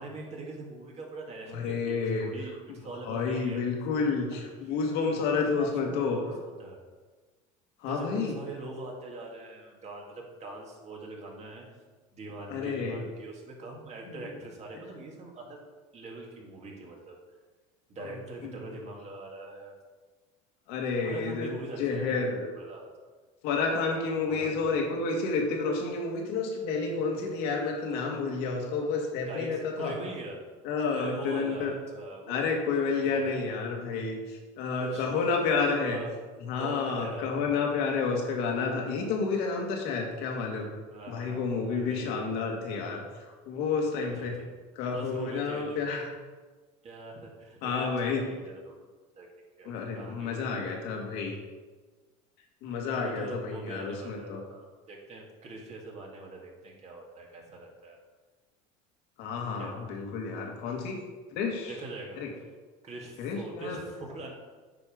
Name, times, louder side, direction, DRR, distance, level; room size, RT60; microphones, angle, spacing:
voice 1, 0.0-3.7 4.3-4.7 5.1-6.8 7.9-11.8 12.1-15.6 15.9-17.2 17.9-19.7 21.0-22.9 24.3-24.6 29.3-30.4 30.9-32.5 32.9-33.4 34.8-35.1 35.7-36.2 36.6-38.0 40.9-41.4 41.7-42.4 44.0-44.5 44.9-46.0 46.8-48.9 49.1-49.3 49.6-50.6 52.9-58.0 59.5-59.8 61.7-62.5 62.8-64.3, right 2 dB, 40° right, -1 dB, 2.4 m, -43 dB
voice 2, 1.5-2.3 3.0-6.2 7.8-8.3 12.5-13.0 14.1-14.2 18.4-18.5 20.7-21.5 21.8-22.5 23.4-29.9 30.6-31.7 32.3-36.0 36.5-40.7 41.1-44.4 44.8-46.1 47.6-48.2 49.6-51.4 52.6-54.4 59.2-61.0 61.3-61.7 62.2-62.3 63.2-63.8, left 4 dB, 75° left, 1 dB, 2.0 m, -30 dB
8.7 x 5.2 x 5.2 m, 1.4 s
supercardioid pair, 100°, 17 cm